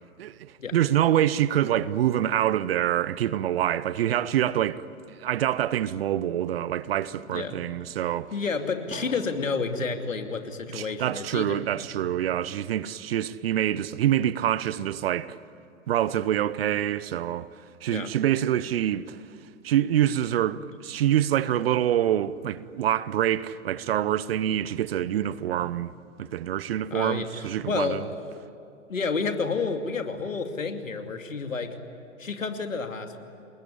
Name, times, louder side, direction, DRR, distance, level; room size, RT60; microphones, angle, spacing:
voice 1, 0.2-4.9 5.2-8.3 10.7-15.4 15.9-17.5 17.8-19.2 19.6-25.9 26.2-28.1, right 11 dB, 50° right, 0.9 m, -26 dB
voice 2, 7.3-7.6 8.3-11.6 12.0-12.1 17.9-18.1 25.6-25.7 26.9-28.3 28.9-31.8 32.2-33.2, left 4 dB, 75° left, 2.8 m, -30 dB
Drum, 8.9-11.2, right 2 dB, 15° right, 3.5 m, -45 dB
29.5 x 20.5 x 9.9 m
figure-of-eight pair, 115°, 40 cm